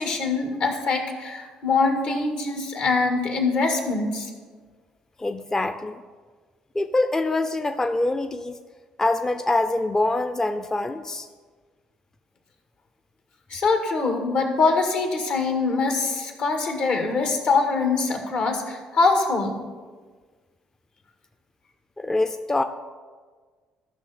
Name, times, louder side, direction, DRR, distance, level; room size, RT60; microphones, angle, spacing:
voice 1, 0.0-4.3 13.5-19.6, left 4 dB, 65° left, 3 dB, 1.7 m, -23 dB
voice 2, 5.2-6.0 6.7-8.6 9.0-11.3 22.0-22.6, left 2 dB, 20° left, 8 dB, 0.5 m, -24 dB
13.5 x 5.7 x 4.1 m, 1.5 s
supercardioid pair, 60°, 3 cm